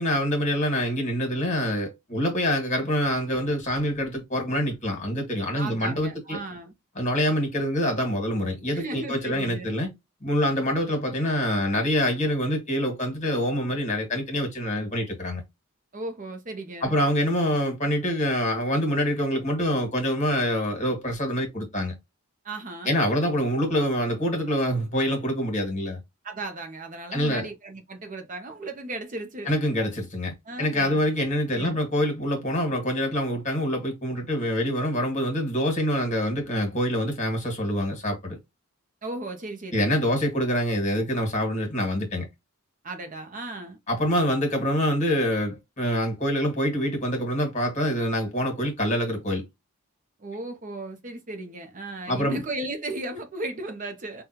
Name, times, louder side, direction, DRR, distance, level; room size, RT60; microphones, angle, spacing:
voice 1, 0.0-6.4 6.9-9.9 10.2-15.4 16.8-21.9 22.8-26.0 27.1-27.5 29.5-38.4 39.7-42.2 43.9-49.4 52.1-52.4, equal, 35° left, 1.5 m, -25 dB
voice 2, 5.5-6.7 8.7-9.7 15.9-17.0 22.4-23.0 26.2-29.5 30.4-31.0 31.5-31.8 39.0-40.0 42.8-43.8 50.2-54.2, right 2 dB, 35° right, 0.6 m, -35 dB
5.2 x 2.3 x 2.7 m
head